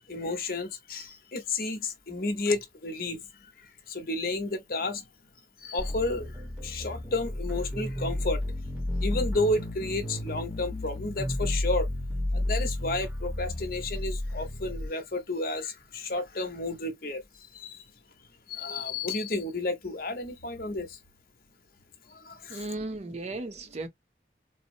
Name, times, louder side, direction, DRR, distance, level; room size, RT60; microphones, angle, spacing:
voice 1, 0.1-5.1 5.6-8.4 8.8-11.9 12.3-17.2 17.5-17.8 18.5-21.0 22.1-22.7, left 2 dB, 55° left, 0.9 m, -32 dB
sound 1, 5.8-14.9, left 1 dB, 5° right, 0.9 m, -32 dB
voice 2, 22.5-23.9, right 2 dB, 35° right, 0.5 m, -35 dB
4.1 x 2.0 x 2.6 m
head